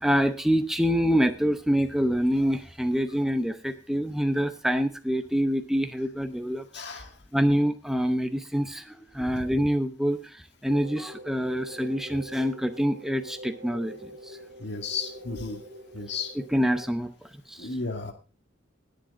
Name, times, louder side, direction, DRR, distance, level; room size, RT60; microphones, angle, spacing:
voice 1, 0.0-6.6 7.3-10.3 10.6-13.9 16.5-17.1 17.5-17.7, equal, ahead, 8 dB, 0.8 m, -26 dB
voice 2, 6.7-7.1 14.6-15.6 15.9-16.3 17.6-18.1, left 4 dB, 55° left, 5 dB, 2.2 m, -33 dB
sound 1, 10.7-16.9, equal, 55° right, 2.3 m, -44 dB
18.0 x 7.9 x 3.7 m, 0.32 s
head